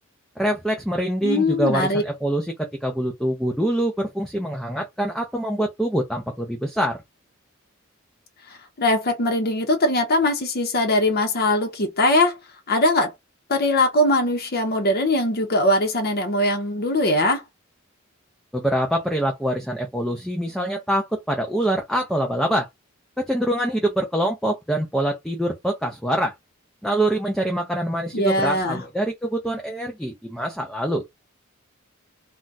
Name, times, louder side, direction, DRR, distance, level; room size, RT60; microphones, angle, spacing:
voice 1, 0.4-7.0 18.5-22.7 23.2-26.3 26.8-31.0, right 1 dB, ahead, 0.5 m, -25 dB
voice 2, 1.2-2.0 8.5-12.4 12.7-13.1 13.5-17.4 28.1-28.8, left 1 dB, 50° left, 0.7 m, -21 dB
2.4 x 2.2 x 3.9 m
head